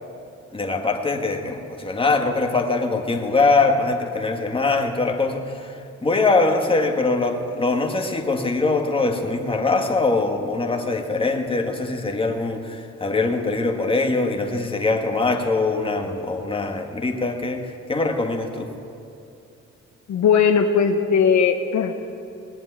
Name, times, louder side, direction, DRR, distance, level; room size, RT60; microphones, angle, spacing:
voice 1, 0.5-5.4 6.0-18.7, left 3 dB, 20° left, 3 dB, 1.8 m, -22 dB
voice 2, 20.1-21.9, left 6 dB, 70° left, 5 dB, 1.1 m, -18 dB
19.5 x 7.2 x 9.6 m, 2.7 s
cardioid pair, 90°, 30 cm